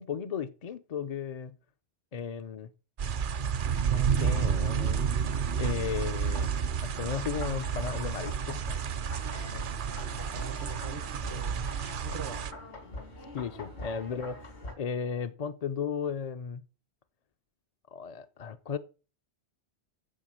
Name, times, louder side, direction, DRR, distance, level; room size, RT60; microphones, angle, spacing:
voice 1, 0.0-1.5 2.1-2.7 3.9-5.0 5.6-6.5 6.8-8.6 13.3-16.6 17.9-18.8, left 6 dB, 45° left, 0.5 m, -35 dB
sound 1, 3.0-12.5, right 7 dB, 55° right, 0.8 m, -30 dB
sound 2, 7.4-14.7, left 2 dB, 80° left, 2.9 m, -44 dB
voice 2, 9.3-12.5, right 6 dB, 75° right, 1.2 m, -43 dB
8.8 x 7.2 x 6.3 m
omnidirectional pair, 1.1 m